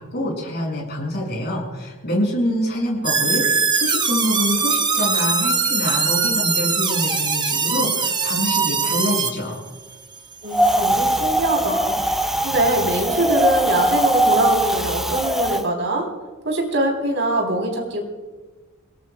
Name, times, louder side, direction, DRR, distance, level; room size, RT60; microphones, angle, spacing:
voice 1, 0.0-9.6, equal, 50° left, -2 dB, 6.7 m, -25 dB
sound 1, 3.0-9.3, right 5 dB, 20° right, 1.0 m, -21 dB
voice 2, 10.4-12.0 12.4-16.1 16.4-18.0, right 1 dB, 60° right, 1 dB, 3.7 m, -23 dB
Wind, 10.5-15.6, right 1 dB, ahead, 0.5 m, -21 dB
28.5 x 18.0 x 2.3 m, 1.3 s
head